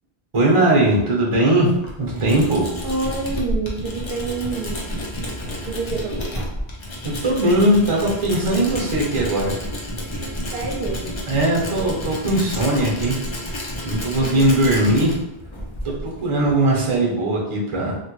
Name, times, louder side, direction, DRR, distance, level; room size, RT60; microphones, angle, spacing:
voice 1, 0.3-2.7 5.5-5.7 7.0-9.5 11.3-13.2 13.4-15.1 15.8-18.0, right 1 dB, 35° right, -3 dB, 0.8 m, -19 dB
Tools, 1.6-17.0, equal, 40° left, 0.5 m, -30 dB
voice 2, 2.8-5.0 5.7-6.5 10.5-11.1 14.2-14.5, right 3 dB, 80° right, 0 dB, 0.8 m, -28 dB
3.0 x 2.2 x 3.0 m, 0.82 s
omnidirectional pair, 1.0 m